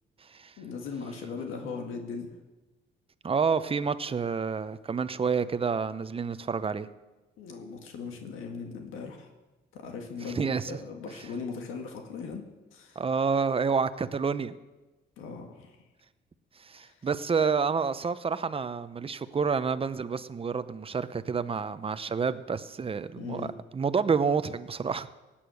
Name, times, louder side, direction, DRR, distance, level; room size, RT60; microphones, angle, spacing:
voice 1, 0.6-2.4 7.4-9.3 9.7-12.5 12.7-13.0 15.2-15.8 16.8-16.9 23.1-23.5, left 5 dB, 90° left, 3 dB, 2.0 m, -39 dB
voice 2, 3.2-6.9 10.3-10.8 13.0-14.5 16.7-23.5 23.7-25.1, right 5 dB, 30° right, 13 dB, 0.8 m, -29 dB
17.5 x 8.7 x 6.4 m, 1.1 s
cardioid pair, 90°, 20 cm